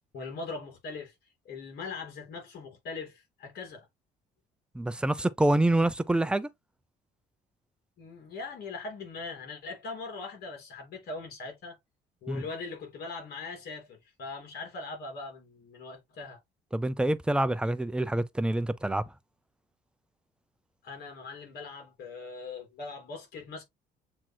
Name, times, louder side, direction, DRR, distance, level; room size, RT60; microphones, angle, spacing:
voice 1, 0.1-1.1 1.4-3.9 8.0-11.8 12.2-16.4 20.8-23.6, left 4 dB, 65° left, 3.1 m, -41 dB
voice 2, 4.7-6.5 12.3-12.4 16.7-19.0, right 1 dB, 5° right, 0.5 m, -26 dB
7.4 x 3.0 x 2.2 m
cardioid pair, 110°, 17 cm